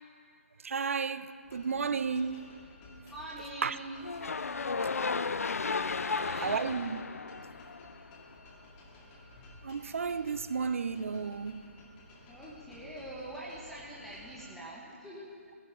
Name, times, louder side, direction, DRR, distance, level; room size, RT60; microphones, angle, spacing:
voice 1, 0.6-2.4 3.6-3.8 5.1-5.2 6.4-7.0 9.6-11.7, right 5 dB, 65° right, 0.6 m, -33 dB
sound 1, 1.4-14.5, left 2 dB, 20° left, 2.1 m, -54 dB
voice 2, 3.1-3.9 6.0-6.7 12.3-15.3, right 1 dB, ahead, 1.5 m, -44 dB
sound 2, 4.0-8.2, left 4 dB, 85° left, 0.5 m, -34 dB
18.5 x 16.0 x 3.8 m
hypercardioid pair, 155°, 8 cm